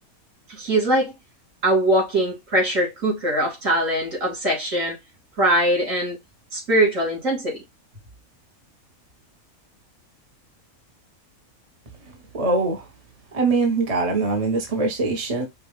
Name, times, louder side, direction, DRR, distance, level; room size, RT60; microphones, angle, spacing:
voice 1, 0.5-1.1 1.6-5.0 5.4-6.2 6.5-7.6, right 1 dB, 60° right, 3.4 m, -21 dB
voice 2, 12.3-12.8 13.3-15.5, right 3 dB, 30° right, 1.0 m, -22 dB
5.6 x 2.5 x 3.4 m
omnidirectional pair, 1.5 m